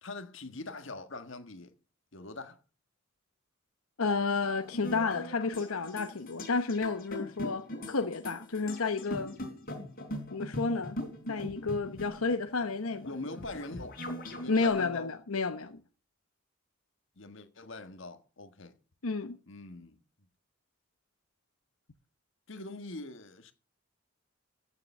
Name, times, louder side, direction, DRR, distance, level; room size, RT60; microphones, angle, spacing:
voice 1, 0.0-1.7 2.1-2.6 13.0-14.0 14.3-15.1 17.2-18.8 19.5-20.0 22.5-23.5, left 2 dB, 60° left, 1.5 m, -43 dB
voice 2, 4.0-9.4 10.3-11.0 11.3-13.1 14.5-15.8 19.0-19.4, left 4 dB, 85° left, 1.0 m, -31 dB
sound 1, 4.6-14.7, left 1 dB, 45° left, 3.8 m, -41 dB
14.5 x 6.8 x 6.7 m
head